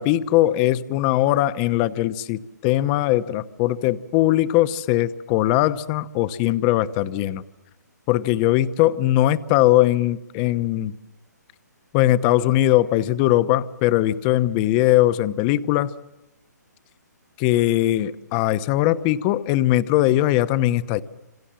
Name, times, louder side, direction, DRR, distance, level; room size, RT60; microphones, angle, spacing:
voice 1, 0.0-7.4 8.1-10.9 11.9-15.9 17.4-21.0, left 14 dB, 25° left, 14 dB, 1.0 m, -20 dB
28.5 x 26.5 x 7.6 m, 0.93 s
hypercardioid pair, 145°, 10 cm